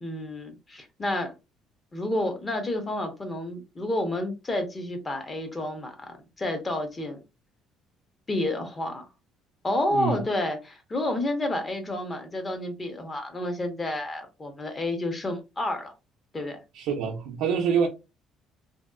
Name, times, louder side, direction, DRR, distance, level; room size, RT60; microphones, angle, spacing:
voice 1, 0.0-1.3 1.9-7.2 8.3-9.1 9.6-15.9 16.3-16.6, left 1 dB, 20° left, 0.6 m, -30 dB
voice 2, 9.9-10.2 16.7-17.9, right 6 dB, 80° right, 0.5 m, -26 dB
2.9 x 2.7 x 2.2 m
cardioid pair, 155°, 0 cm